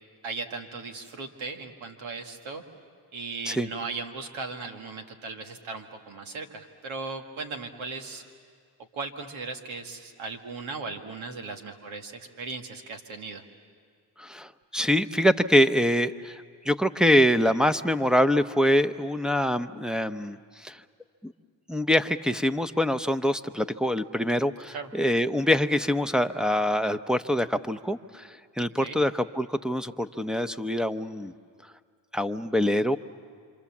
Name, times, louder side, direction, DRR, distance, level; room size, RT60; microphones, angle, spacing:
voice 1, 0.2-2.6 3.1-8.2 8.9-13.4 24.7-24.9 28.8-29.0, right 4 dB, 85° right, 4 dB, 1.9 m, -37 dB
voice 2, 14.2-20.8 21.2-21.3 21.7-28.3 28.6-31.3 32.1-33.0, equal, ahead, 7 dB, 0.8 m, -24 dB
27.0 x 26.5 x 7.3 m, 2.2 s
cardioid pair, 60°, 46 cm